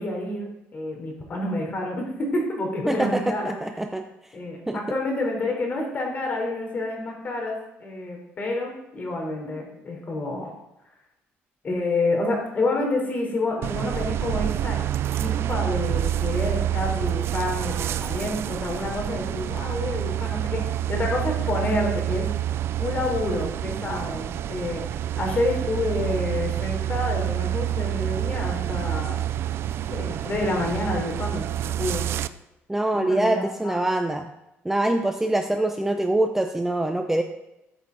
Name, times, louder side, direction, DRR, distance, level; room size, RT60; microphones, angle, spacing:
voice 1, 0.0-3.6 4.3-10.5 11.6-14.8 15.1-22.3 22.8-24.8 25.2-29.2 29.8-32.1 32.9-33.8, left 2 dB, 35° left, 0 dB, 3.8 m, -28 dB
voice 2, 2.9-4.0 4.7-4.8 32.7-34.3 34.6-37.2, right 1 dB, 5° right, 5 dB, 0.7 m, -24 dB
sound 1, 13.6-32.3, right 12 dB, 55° right, 0.5 m, -28 dB
13.5 x 7.0 x 4.1 m, 0.90 s
cardioid pair, 110°, 5 cm